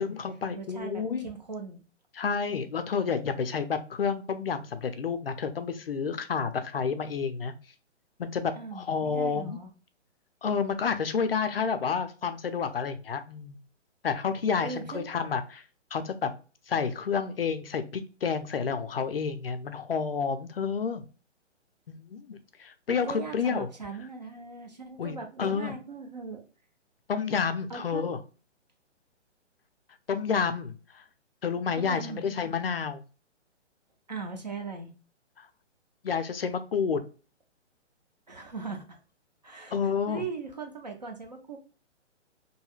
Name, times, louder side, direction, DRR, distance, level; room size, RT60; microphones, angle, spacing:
voice 1, 0.0-1.3 2.1-7.5 8.2-9.6 10.4-13.6 14.0-15.6 15.9-16.3 16.7-21.0 21.9-23.7 25.0-25.7 27.1-28.2 30.1-31.0 31.4-33.0 35.4-35.5 36.0-37.0 39.7-40.2, left 6 dB, 55° left, 10 dB, 0.5 m, -30 dB
voice 2, 0.6-1.8 8.6-9.7 14.6-15.1 22.9-26.4 27.7-28.1 31.8-32.2 34.1-34.9 38.3-39.0 39.4-41.6, right 4 dB, 35° right, 3 dB, 0.5 m, -39 dB
3.1 x 2.7 x 2.3 m, 0.35 s
hypercardioid pair, 175°, 36 cm